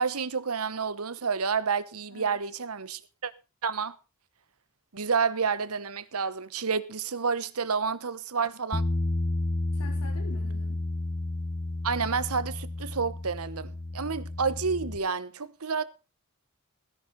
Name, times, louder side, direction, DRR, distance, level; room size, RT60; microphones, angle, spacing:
voice 1, 0.0-3.3 3.6-3.9 4.9-8.8 11.8-15.8, right 5 dB, 80° right, 1.1 m, -29 dB
Bass guitar, 8.7-15.0, left 2 dB, 40° left, 1.1 m, -31 dB
voice 2, 9.7-10.8, left 3 dB, 85° left, 1.5 m, -46 dB
16.5 x 10.5 x 4.1 m
head